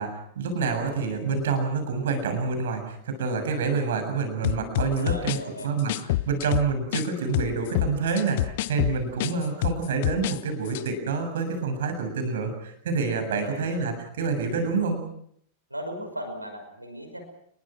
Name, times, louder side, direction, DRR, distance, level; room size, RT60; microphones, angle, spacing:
voice 1, 0.0-5.4 5.6-5.9 6.3-15.0, right 4 dB, 60° right, 6 dB, 7.2 m, -27 dB
sound 1, 4.4-7.1 7.3-10.4 10.7-10.9, left 16 dB, 50° left, 1.0 m, -27 dB
voice 2, 4.9-5.7 13.3-13.7 15.7-17.2, equal, 85° right, 6 dB, 5.6 m, -37 dB
29.5 x 22.0 x 6.2 m, 0.68 s
figure-of-eight pair, 90°, 0 cm